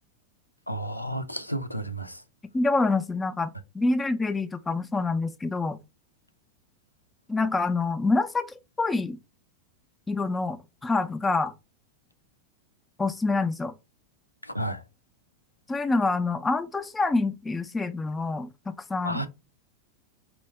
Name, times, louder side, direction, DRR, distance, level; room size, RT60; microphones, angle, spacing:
voice 1, 0.7-2.2 14.5-14.8 19.0-19.3, right 1 dB, 90° left, 0.4 m, -31 dB
voice 2, 2.5-5.8 7.3-9.2 10.1-10.6 10.8-11.5 13.0-13.7 15.7-19.2, left 3 dB, 10° left, 0.4 m, -26 dB
4.6 x 2.3 x 3.1 m
figure-of-eight pair, 90°, 0 cm